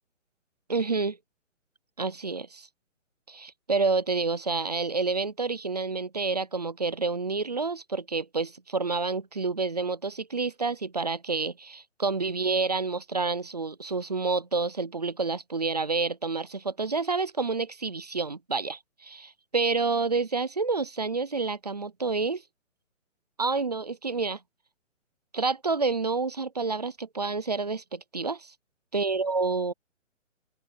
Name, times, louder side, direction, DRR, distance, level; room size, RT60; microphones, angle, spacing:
voice 1, 0.7-1.2 2.0-2.7 3.3-22.4 23.4-24.4 25.3-28.5 28.9-29.7, right 4 dB, 35° right, 0.5 m, -29 dB
open air
hypercardioid pair, 170°, 38 cm